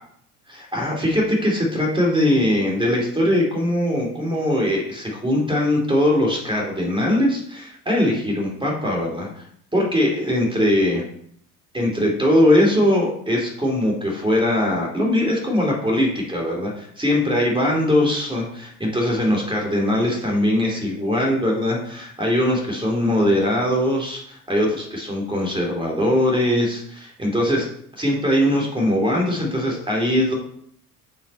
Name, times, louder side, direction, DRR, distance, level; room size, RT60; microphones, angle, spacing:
voice 1, 0.5-9.4 9.7-11.0 11.7-27.7 28.0-30.3, left 1 dB, 10° right, -1 dB, 2.8 m, -21 dB
8.9 x 4.6 x 4.4 m, 0.65 s
hypercardioid pair, 65°, 46 cm